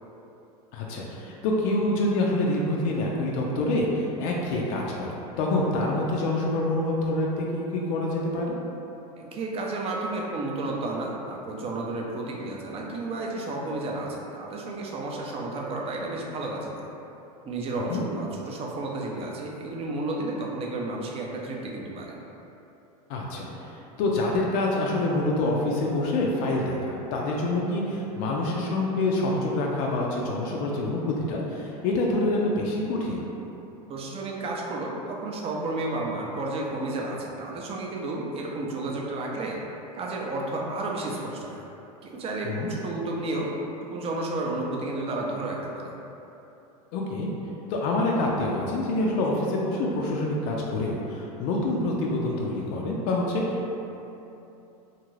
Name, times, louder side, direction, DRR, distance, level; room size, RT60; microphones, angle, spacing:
voice 1, 0.7-8.6 17.9-18.0 23.1-33.2 42.4-42.7 46.9-47.3 47.7-53.8, left 2 dB, 55° left, -2 dB, 0.4 m, -26 dB
voice 2, 9.2-16.9 17.4-22.2 33.9-39.6 39.9-41.7 42.0-43.5 43.9-45.9, right 2 dB, 30° right, -2 dB, 0.5 m, -32 dB
2.6 x 2.5 x 3.1 m, 2.9 s
hypercardioid pair, 100°, 20 cm